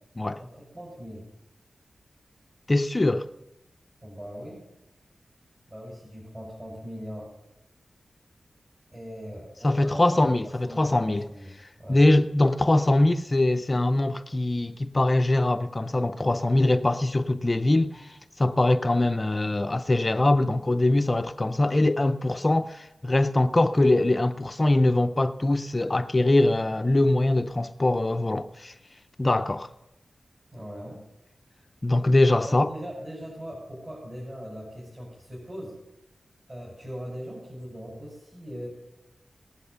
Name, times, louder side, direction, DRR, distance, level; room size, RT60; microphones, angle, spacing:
voice 1, 0.4-1.3 4.0-4.7 5.7-7.3 8.9-10.1 10.6-11.5 11.8-12.0 30.5-31.1 32.4-35.8 36.5-38.7, equal, 30° right, 5.9 m, -40 dB
voice 2, 2.7-3.3 9.6-11.3 11.9-28.7 29.2-29.7 31.8-32.7, left 2 dB, 25° left, 0.5 m, -22 dB
18.0 x 9.9 x 6.9 m
wide cardioid pair, 115°, 0 cm